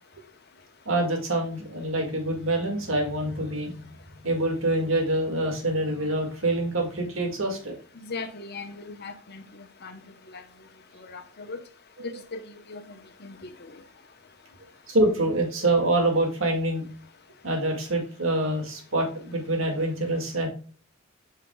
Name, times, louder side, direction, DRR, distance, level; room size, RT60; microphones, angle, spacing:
voice 1, 0.9-3.9 4.2-7.7 14.9-16.8 17.4-20.5, right 1 dB, 80° right, 2.0 m, -26 dB
voice 2, 8.0-10.0 10.3-10.4 11.0-11.6 12.0-12.8 13.2-13.5, left 3 dB, 55° left, 1.0 m, -39 dB
7.9 x 5.7 x 2.3 m
head